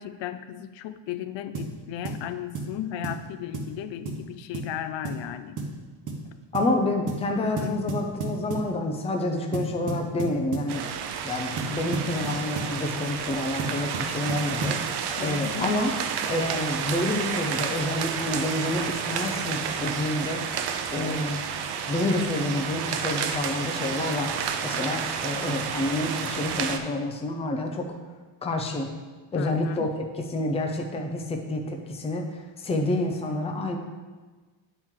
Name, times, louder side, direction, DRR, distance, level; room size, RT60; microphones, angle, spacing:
voice 1, 0.0-5.6 7.4-7.9 15.2-15.7 29.4-29.9, left 10 dB, 75° left, 10 dB, 0.6 m, -35 dB
sound 1, 1.6-1.8 2.1-2.2 2.6-2.8 3.0-3.2 3.5-3.8 4.1-4.2 4.5-4.7 5.1-5.3 5.6-5.8 6.1-6.2 6.5-6.7 7.1-7.3 7.6-8.7 9.5-10.7 11.6-12.8 13.6-14.8, right 3 dB, 45° right, 1.0 m, -32 dB
voice 2, 6.5-10.9 11.2-14.9 15.2-15.9 16.3-20.6 20.9-21.4 21.9-24.3 24.6-27.9 28.4-28.9 29.3-29.9 30.2-33.8, left 2 dB, 15° left, 2 dB, 0.5 m, -28 dB
sound 2, 10.7-26.8, right 7 dB, 60° right, 0.6 m, -31 dB
9.4 x 4.6 x 3.7 m, 1.3 s
cardioid pair, 175°, 44 cm